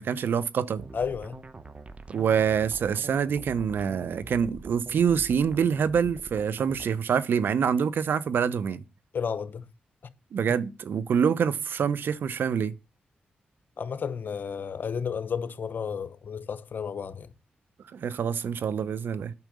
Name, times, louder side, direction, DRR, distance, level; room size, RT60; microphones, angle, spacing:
voice 1, 0.0-0.9 2.1-8.8 10.3-12.7 17.9-19.3, right 7 dB, 75° right, 0.9 m, -26 dB
sound 1, 0.8-6.9, right 3 dB, 35° right, 1.1 m, -44 dB
voice 2, 0.9-1.4 9.1-9.7 13.8-17.3, left 6 dB, 60° left, 1.1 m, -32 dB
9.7 x 6.0 x 6.8 m
cardioid pair, 50°, 4 cm